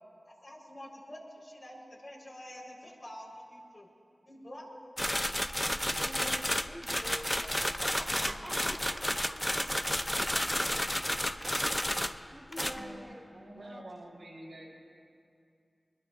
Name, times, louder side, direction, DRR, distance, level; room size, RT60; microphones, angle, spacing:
voice 1, 0.2-3.9 4.2-4.9 8.2-8.4 9.7-9.8 12.3-12.8, left 1 dB, 50° left, -5 dB, 4.7 m, -47 dB
sound 1, 5.0-12.3 12.5-12.8, equal, 10° left, 0.6 m, -31 dB
voice 2, 5.9-9.3 11.2-11.4 12.3-13.2 13.6-13.8, equal, 10° right, -2 dB, 1.7 m, -46 dB
sound 2, 5.9-6.1 7.1-7.4 8.2-8.5 10.2-10.6 10.8-10.9 11.4-11.7 12.6-12.9, right 1 dB, 50° right, 2.1 m, -46 dB
voice 3, 12.6-14.7, right 1 dB, 85° right, -4 dB, 4.4 m, -48 dB
24.0 x 21.5 x 2.7 m, 2.5 s
wide cardioid pair, 50°, 0 cm